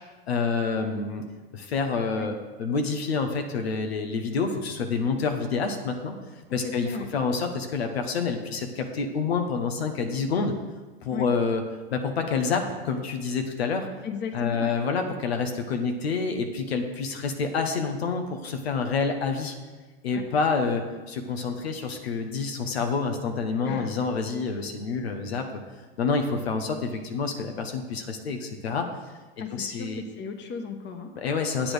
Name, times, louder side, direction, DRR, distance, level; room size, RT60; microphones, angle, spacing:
voice 1, 0.3-1.2 1.5-2.3 2.6-6.1 6.5-10.5 11.0-11.6 11.9-13.9 14.3-19.5 20.0-25.5 26.0-28.9 29.4-30.0 31.2-31.7, left 4 dB, 85° left, 5 dB, 1.2 m, -28 dB
voice 2, 6.5-7.1 11.1-11.3 14.0-14.7 20.1-20.2 23.6-23.9 29.4-31.1, left 5 dB, 35° left, 6 dB, 1.3 m, -35 dB
8.7 x 8.2 x 5.1 m, 1.3 s
hypercardioid pair, 100°, 30 cm